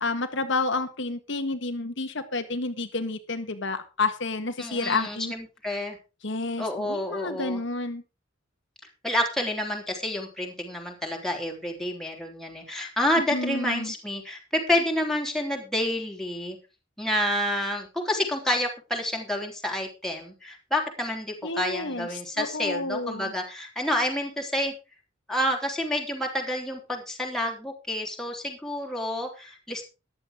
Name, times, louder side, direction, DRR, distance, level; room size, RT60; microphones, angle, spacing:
voice 1, 0.0-5.3 6.2-8.0 13.3-13.9 21.4-23.3, left 3 dB, 65° left, 6 dB, 1.5 m, -30 dB
voice 2, 4.6-6.0 6.6-7.6 9.0-16.6 17.0-24.7 25.3-29.8, left 1 dB, ahead, 0 dB, 3.7 m, -29 dB
14.0 x 11.0 x 3.6 m, 0.30 s
head